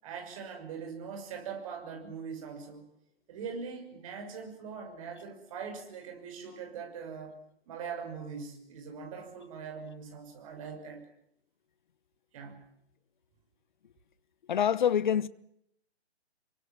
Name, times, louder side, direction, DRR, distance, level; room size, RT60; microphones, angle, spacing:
voice 1, 0.0-2.9 3.3-7.4 7.7-11.1 12.3-12.6, right 6 dB, 30° right, 6.2 m, -42 dB
voice 2, 14.5-15.3, left 9 dB, 45° left, 1.1 m, -25 dB
28.0 x 24.0 x 7.4 m
hypercardioid pair, 165°, 33 cm